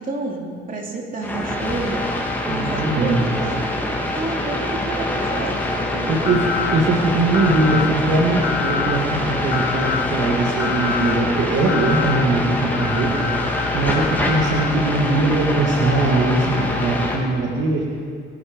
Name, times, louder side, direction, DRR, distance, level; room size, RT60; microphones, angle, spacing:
voice 1, 0.0-3.7 4.2-6.3, right 3 dB, 45° right, 0 dB, 3.0 m, -30 dB
sound 1, 1.2-17.2, left 1 dB, 10° left, 2.8 m, -24 dB
voice 2, 2.5-3.2 6.1-13.3 13.7-17.8, right 2 dB, 70° right, -1 dB, 2.1 m, -21 dB
sound 2, 6.3-6.8 7.3-7.9 8.4-9.0 9.5-10.1 10.6-11.2 11.7-12.2 12.7-14.7, left 7 dB, 70° left, 1.4 m, -27 dB
23.0 x 11.5 x 5.3 m, 2.2 s
cardioid pair, 90°, 20 cm